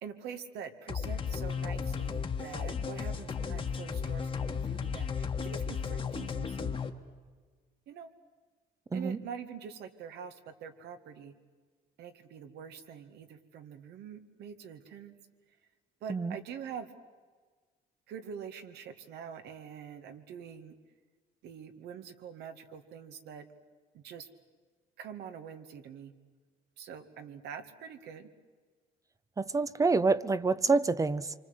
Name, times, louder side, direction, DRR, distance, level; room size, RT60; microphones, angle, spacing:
voice 1, 0.0-6.9 7.9-8.1 8.9-11.3 12.0-15.1 16.0-16.9 18.1-20.7 21.4-23.5 23.9-24.3 25.0-26.1 26.8-28.3, right 7 dB, 80° right, 7 dB, 2.1 m, -45 dB
sound 1, 0.9-6.9, left 6 dB, 30° left, 1.5 m, -34 dB
voice 2, 29.4-31.3, right 4 dB, 20° right, 16 dB, 0.7 m, -27 dB
26.0 x 25.0 x 8.1 m, 1.5 s
cardioid pair, 110°, 17 cm